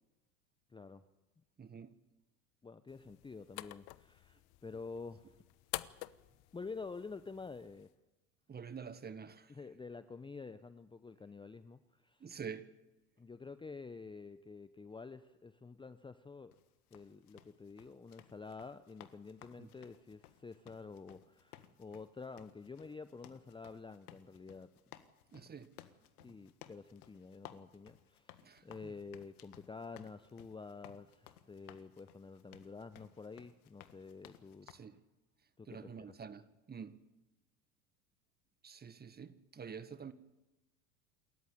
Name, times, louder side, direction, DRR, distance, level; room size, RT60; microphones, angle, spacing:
voice 1, 0.7-1.0 2.6-5.3 6.5-7.9 9.5-12.2 13.2-16.5 16.9-24.7 26.2-28.4 28.6-34.7 35.6-35.8, left 4 dB, 10° left, 0.9 m, -49 dB
voice 2, 1.6-1.9 8.5-9.5 12.2-12.7 19.6-19.7 25.3-25.7 26.2-26.3 28.4-28.9 34.7-35.0 35.6-37.0 38.6-40.1, right 6 dB, 20° right, 1.6 m, -48 dB
sound 1, 2.9-7.9, left 20 dB, 55° left, 1.0 m, -49 dB
sound 2, 16.5-34.7, left 12 dB, 70° left, 1.8 m, -59 dB
28.0 x 14.0 x 9.1 m
hypercardioid pair, 80°, 46 cm